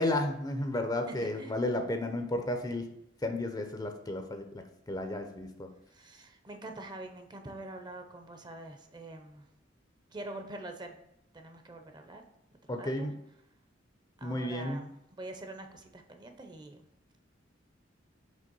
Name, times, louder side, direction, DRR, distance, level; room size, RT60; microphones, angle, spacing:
voice 1, 0.0-2.9 3.2-5.7 12.7-13.2 14.2-14.8, left 1 dB, 20° left, 5 dB, 0.5 m, -33 dB
voice 2, 1.1-1.6 5.9-9.4 10.1-10.9 11.3-12.2 12.8-13.1 14.2-16.9, right 2 dB, 25° right, 5 dB, 0.6 m, -45 dB
5.3 x 3.4 x 5.3 m, 0.82 s
head